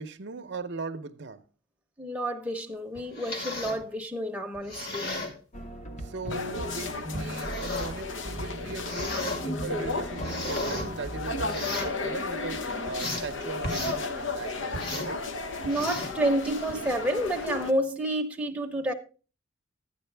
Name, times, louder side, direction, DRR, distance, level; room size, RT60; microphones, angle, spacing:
voice 1, 0.0-1.4 6.0-15.2, right 3 dB, 60° right, 0.7 m, -39 dB
voice 2, 2.0-5.1 15.6-18.9, right 1 dB, 5° right, 0.9 m, -29 dB
sound 1, 3.0-3.8 4.5-5.3 6.3-6.4 7.1-8.0 8.7-9.4 9.9-10.9 11.4-12.0 12.5-13.3 13.6-14.0 14.7-15.1 15.6-16.2 16.7-16.9, left 2 dB, 50° left, 2.2 m, -35 dB
sound 2, 5.5-11.9, right 1 dB, 35° left, 1.0 m, -39 dB
sound 3, 6.3-17.7, left 3 dB, 70° left, 0.9 m, -34 dB
12.0 x 9.0 x 3.3 m
head